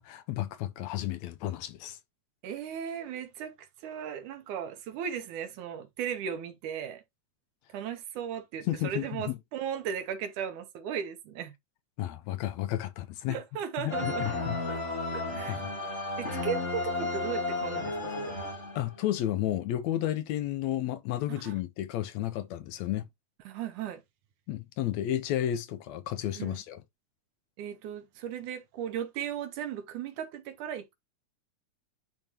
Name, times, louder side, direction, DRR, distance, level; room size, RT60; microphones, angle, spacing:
voice 1, 0.0-2.0 8.7-9.4 12.0-13.4 13.8-14.6 15.5-15.7 16.3-16.4 18.8-23.1 24.5-26.8, left 13 dB, 75° left, 1.8 m, -32 dB
voice 2, 2.4-7.0 7.7-11.5 13.3-14.2 14.7-14.8 15.1-15.6 16.2-18.4 21.3-21.6 23.5-24.0 26.4-26.6 27.6-30.9, right 8 dB, 90° right, 2.6 m, -36 dB
sound 1, 13.9-19.1, left 2 dB, 30° left, 1.5 m, -33 dB
10.5 x 3.7 x 2.9 m
omnidirectional pair, 3.4 m